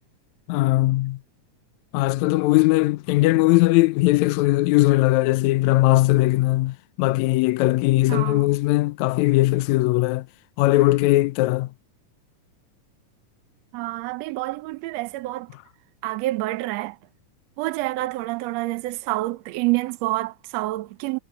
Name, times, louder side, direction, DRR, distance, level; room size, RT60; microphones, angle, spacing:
voice 1, 0.5-1.2 1.9-10.3 10.6-11.7, left 19 dB, 85° left, 1.6 m, -19 dB
voice 2, 8.1-8.5 13.7-15.5 16.0-17.0 17.6-21.2, right 18 dB, 85° right, 1.5 m, -27 dB
omnidirectional pair, 3.8 m